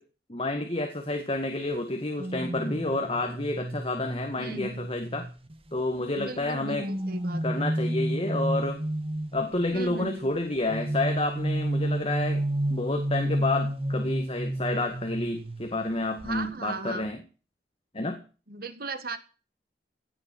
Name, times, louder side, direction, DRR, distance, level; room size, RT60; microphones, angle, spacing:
voice 1, 0.3-5.3 5.7-6.9 7.4-8.8 9.3-12.4 12.7-17.2 17.9-18.2, left 2 dB, 35° left, 5 dB, 1.9 m, -29 dB
sound 1, 2.2-5.8 6.4-9.7 10.7-15.9 16.2-16.5, right 1 dB, 35° right, 1.7 m, -31 dB
voice 2, 4.4-4.9 6.2-7.6 9.7-10.3 16.2-17.1 18.5-19.2, right 3 dB, 55° right, 11 dB, 1.9 m, -37 dB
17.0 x 7.0 x 8.7 m, 0.36 s
head